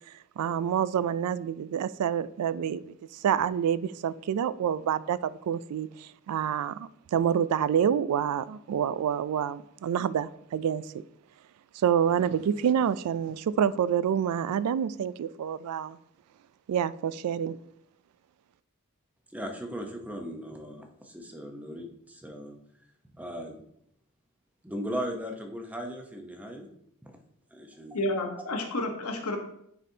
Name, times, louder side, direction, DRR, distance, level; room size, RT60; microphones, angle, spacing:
voice 1, 0.4-10.8 11.7-16.0 16.7-17.6, right 8 dB, 85° right, 17 dB, 0.3 m, -27 dB
voice 2, 19.3-22.6 23.2-23.6 24.6-26.7 27.0-27.2 27.5-28.0, equal, 5° right, 3 dB, 0.7 m, -37 dB
voice 3, 27.9-29.4, left 1 dB, 75° left, 3 dB, 1.1 m, -30 dB
9.4 x 4.2 x 2.7 m, 0.74 s
head